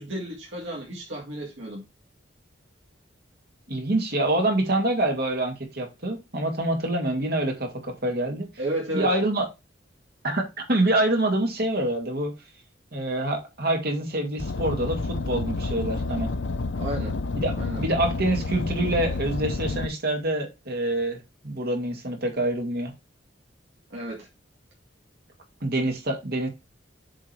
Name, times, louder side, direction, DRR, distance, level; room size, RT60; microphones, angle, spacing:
voice 1, 0.0-1.8 8.6-9.1 16.8-17.1 17.6-17.8 23.9-24.3, right 1 dB, 75° right, 2.1 m, -32 dB
voice 2, 3.7-8.5 8.9-9.5 10.2-12.3 12.9-16.3 17.4-21.2 21.4-22.9 25.6-26.5, right 1 dB, 55° right, 2.3 m, -26 dB
Car, 14.4-19.9, left 3 dB, 80° left, 0.7 m, -29 dB
7.5 x 3.8 x 4.6 m
head